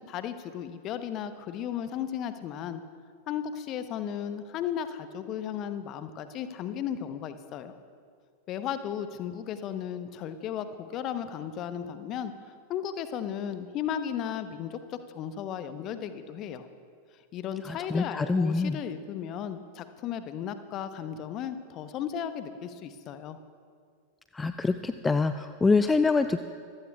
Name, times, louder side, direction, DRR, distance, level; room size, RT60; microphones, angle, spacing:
voice 1, 0.0-2.8 3.3-7.8 8.5-12.3 12.7-14.8 15.1-16.7 17.3-23.4, left 9 dB, 35° left, 10 dB, 0.9 m, -35 dB
voice 2, 17.6-18.8 24.3-26.4, left 4 dB, 10° left, 10 dB, 0.4 m, -25 dB
25.5 x 15.5 x 2.4 m, 2.1 s
figure-of-eight pair, 90°, 0 cm